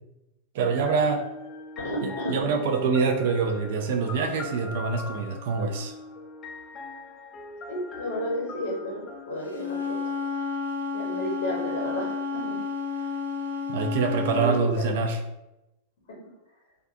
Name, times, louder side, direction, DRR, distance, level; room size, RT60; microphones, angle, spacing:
voice 1, 0.5-1.2 2.0-5.9 13.7-15.2, right 4 dB, 55° right, 5 dB, 0.3 m, -25 dB
sound 1, 0.8-10.6, left 3 dB, 25° left, 0.4 m, -42 dB
voice 2, 1.8-2.5 7.7-10.4 10.9-12.6 13.0-13.1 14.3-14.9, equal, 60° left, -4 dB, 0.8 m, -32 dB
Wind instrument woodwind instrument, 9.5-14.6, left 5 dB, 90° left, 0.4 m, -31 dB
2.4 x 2.2 x 2.6 m, 0.94 s
figure-of-eight pair, 90°, 0 cm